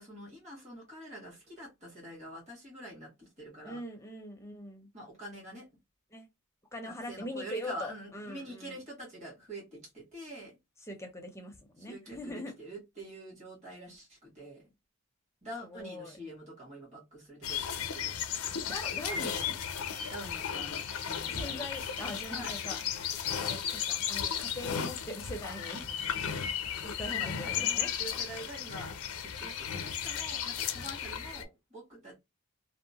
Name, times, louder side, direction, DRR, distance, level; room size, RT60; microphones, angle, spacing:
voice 1, 0.0-3.8 4.9-5.7 6.8-10.6 11.9-14.7 15.4-18.5 20.1-21.6 22.3-22.6 27.1-32.2, right 1 dB, 35° right, 1.5 m, -46 dB
voice 2, 3.6-4.9 6.1-6.3 6.7-8.8 10.8-12.5 15.6-16.2 18.7-19.6 21.3-22.8 23.4-25.9 26.5-28.0 29.4-29.6, left 1 dB, 15° left, 0.5 m, -42 dB
sound 1, 17.4-31.4, left 8 dB, 90° left, 0.5 m, -35 dB
2.8 x 2.0 x 2.7 m
head